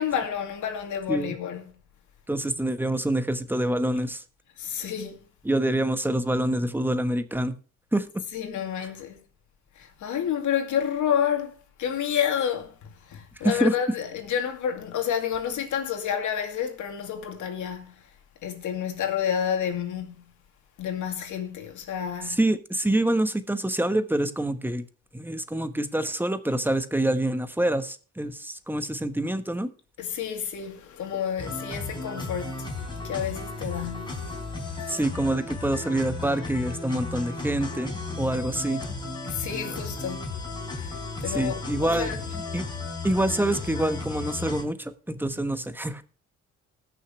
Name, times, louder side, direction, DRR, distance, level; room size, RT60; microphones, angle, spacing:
voice 1, 0.0-1.6 4.6-5.2 8.3-9.2 9.8-11.5 11.8-18.0 18.4-20.3 20.8-22.4 30.0-34.3 34.8-35.0 39.2-40.3 40.8-42.2, left 8 dB, 75° left, 2.6 m, -30 dB
voice 2, 2.3-4.2 5.4-7.6 7.9-8.1 13.4-13.7 22.2-24.8 25.1-29.7 34.9-37.9 38.2-38.8 41.3-42.1 42.5-42.6 43.0-46.0, right 1 dB, 5° right, 1.2 m, -26 dB
sound 1, 31.4-44.6, left 3 dB, 15° left, 4.8 m, -34 dB
19.5 x 6.6 x 3.3 m
cardioid pair, 90°, 30 cm